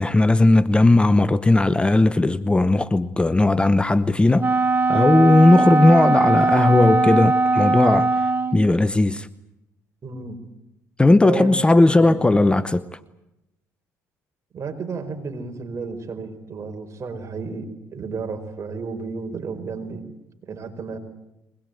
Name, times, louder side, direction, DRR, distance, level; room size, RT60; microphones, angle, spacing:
voice 1, 0.0-4.5 4.9-9.3 11.0-13.0, left 2 dB, 15° left, 0.8 m, -17 dB
Wind instrument woodwind instrument, 4.4-8.7, right 3 dB, 25° right, 0.9 m, -20 dB
voice 2, 10.0-10.4 11.1-11.5 11.8-12.2 14.5-20.0 20.4-21.0, right 4 dB, 40° right, 4.7 m, -32 dB
23.0 x 20.5 x 9.1 m
supercardioid pair, 80°, 7 cm